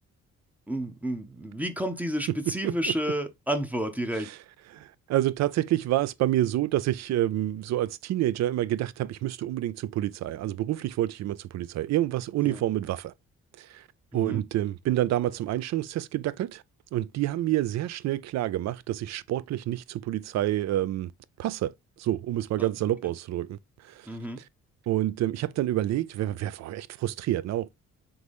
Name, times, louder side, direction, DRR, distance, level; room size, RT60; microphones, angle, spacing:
voice 1, 0.7-4.3 12.4-12.6 14.1-14.4 22.6-22.7 24.1-24.4, right 1 dB, 5° right, 0.7 m, -31 dB
voice 2, 4.7-13.1 13.6-13.8 14.1-16.6 16.9-21.1 21.4-23.6 23.8-24.1 24.9-27.7, right 14 dB, 60° right, 0.4 m, -28 dB
3.9 x 3.2 x 3.4 m
cardioid pair, 90°, 30 cm